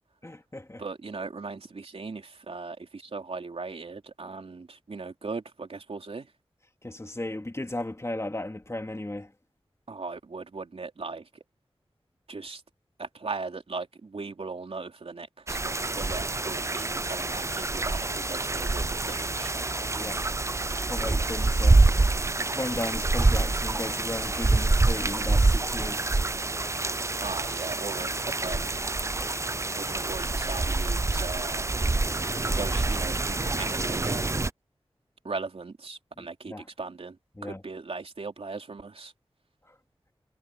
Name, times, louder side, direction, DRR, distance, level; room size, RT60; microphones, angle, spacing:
voice 1, 0.2-0.8 6.8-9.3 19.8-20.4 20.8-21.8 22.2-26.2 36.2-36.7 37.4-37.6, left 1 dB, 30° left, 2.9 m, -36 dB
voice 2, 0.8-6.3 9.9-11.2 12.3-12.6 13.0-19.5 27.2-28.1 28.4-28.9 29.8-31.7 32.4-34.3 35.3-37.1 37.4-39.1, right 4 dB, 80° right, 3.6 m, -38 dB
sound 1, 15.5-34.5, right 2 dB, 30° right, 0.5 m, -26 dB
wide cardioid pair, 45°, 10 cm